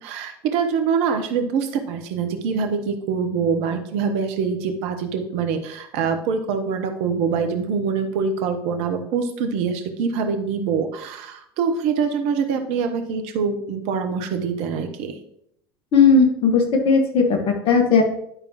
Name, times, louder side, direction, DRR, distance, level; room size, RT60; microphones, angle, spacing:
voice 1, 0.0-15.2, right 6 dB, 55° right, 7 dB, 1.0 m, -24 dB
voice 2, 15.9-18.0, left 4 dB, 45° left, 3 dB, 1.8 m, -16 dB
11.0 x 5.2 x 3.0 m, 0.72 s
figure-of-eight pair, 70°, 13 cm